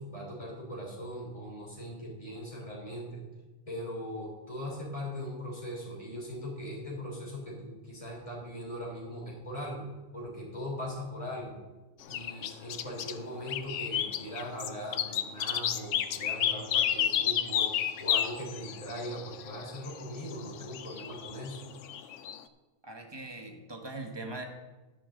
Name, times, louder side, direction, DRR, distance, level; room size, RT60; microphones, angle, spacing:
voice 1, 0.0-3.2 3.7-9.8 10.1-11.6 12.1-17.7 18.0-21.6, equal, 25° left, -4 dB, 3.5 m, -40 dB
sound 1, 12.1-13.1 13.5-22.4, left 10 dB, 70° left, 0.9 m, -31 dB
voice 2, 22.8-24.4, right 2 dB, 20° right, 3 dB, 1.3 m, -41 dB
12.0 x 10.0 x 3.9 m, 1.2 s
omnidirectional pair, 1.4 m